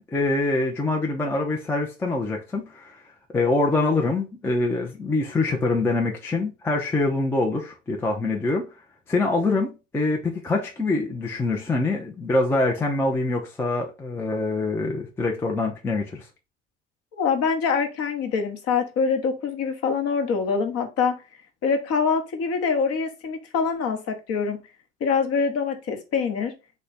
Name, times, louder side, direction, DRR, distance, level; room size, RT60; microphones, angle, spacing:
voice 1, 0.1-3.0 3.3-8.7 9.1-16.3, left 2 dB, 5° left, 0.4 m, -24 dB
voice 2, 17.2-21.2 21.6-24.6 25.0-26.5, left 5 dB, 40° left, 0.8 m, -24 dB
3.1 x 2.2 x 3.8 m
hypercardioid pair, 80°, 37 cm